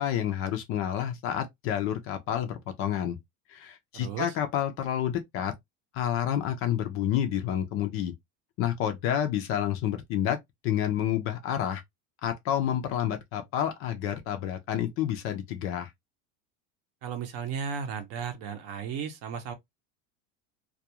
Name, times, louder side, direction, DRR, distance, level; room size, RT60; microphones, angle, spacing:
voice 1, 0.0-3.2 3.5-5.5 5.9-8.1 8.6-10.4 10.6-11.8 12.2-15.9, left 10 dB, 40° left, 0.4 m, -29 dB
voice 2, 3.9-4.3 17.0-19.5, right 7 dB, 45° right, 0.6 m, -35 dB
2.3 x 2.2 x 2.8 m
cardioid pair, 165°, 37 cm